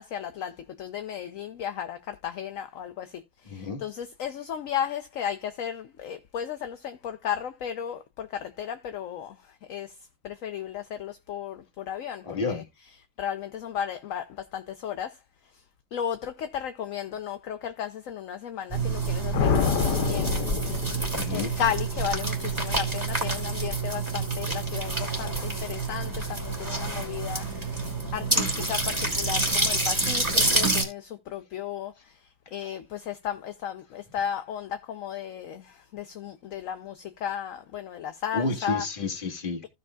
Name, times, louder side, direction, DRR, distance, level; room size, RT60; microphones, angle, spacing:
voice 1, 0.0-3.1 3.8-9.3 9.7-9.9 10.2-12.6 13.2-14.2 14.5-15.1 15.9-20.3 21.3-27.8 28.1-31.9 32.5-38.8, left 9 dB, 60° left, 1.0 m, -34 dB
voice 2, 3.5-3.8 12.2-12.6 21.1-21.5 38.3-39.7, left 3 dB, 35° left, 1.6 m, -30 dB
sound 1, 18.7-30.8, right 3 dB, 15° right, 2.6 m, -28 dB
sound 2, 19.3-21.6, left 7 dB, 85° left, 1.5 m, -27 dB
15.5 x 5.4 x 2.3 m
omnidirectional pair, 1.8 m